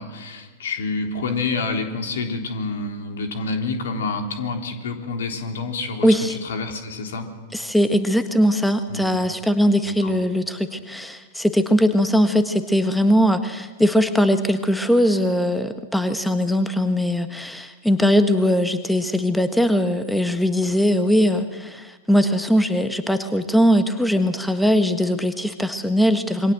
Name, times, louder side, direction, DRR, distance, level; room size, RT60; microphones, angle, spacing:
voice 1, 0.0-7.3 8.9-9.2 9.8-10.1, left 3 dB, 60° left, 4 dB, 3.5 m, -28 dB
voice 2, 6.0-6.4 7.5-26.5, equal, ahead, 9 dB, 1.3 m, -20 dB
27.0 x 23.0 x 7.7 m, 1.3 s
figure-of-eight pair, 100°, 0 cm